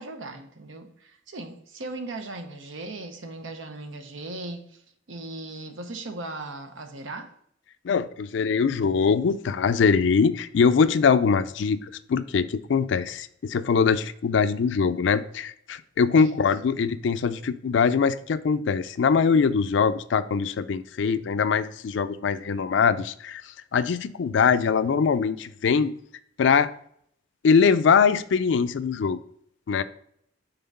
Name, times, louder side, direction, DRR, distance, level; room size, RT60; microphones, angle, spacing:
voice 1, 0.0-4.8 5.1-7.3 16.2-16.4, right 2 dB, 85° right, 0.9 m, -38 dB
voice 2, 7.8-11.8 12.1-23.4 23.7-25.9 26.4-26.7 27.4-29.2 29.7-29.8, left 5 dB, 70° left, 0.4 m, -22 dB
5.7 x 3.8 x 5.2 m
head